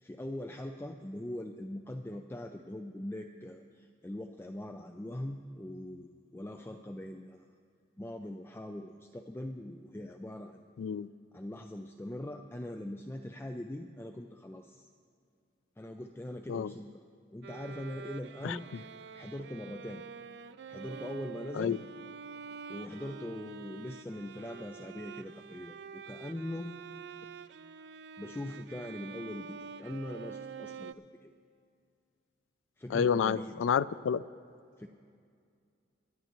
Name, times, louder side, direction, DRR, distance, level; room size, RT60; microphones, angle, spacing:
voice 1, 0.0-7.5 8.0-10.6 11.3-14.9 15.8-17.0 17.3-18.9 19.1-20.0 20.7-21.8 22.7-26.7 28.2-31.3 32.8-33.6 34.8-34.9, left 1 dB, 10° left, 5 dB, 0.3 m, -42 dB
voice 2, 10.8-11.1 16.5-16.7 18.4-18.6 21.5-21.8 32.9-34.2, left 7 dB, 90° left, 17 dB, 0.3 m, -29 dB
Bowed string instrument, 17.4-30.9, right 6 dB, 60° right, 0.4 m, -47 dB
25.5 x 11.0 x 3.0 m, 2.3 s
head